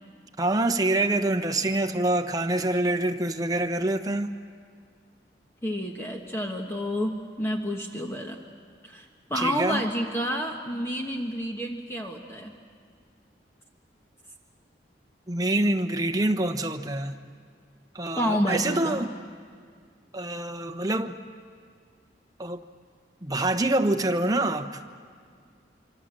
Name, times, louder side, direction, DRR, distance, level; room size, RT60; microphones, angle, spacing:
voice 1, 0.4-4.3 9.3-9.8 15.3-17.1 17.9-19.1 20.1-21.2 22.4-22.6 23.2-24.8, right 2 dB, 20° right, 6 dB, 1.0 m, -26 dB
voice 2, 5.6-8.4 8.8-12.5 18.2-19.0, equal, 15° left, 1 dB, 1.3 m, -29 dB
26.0 x 25.5 x 7.6 m, 2.1 s
head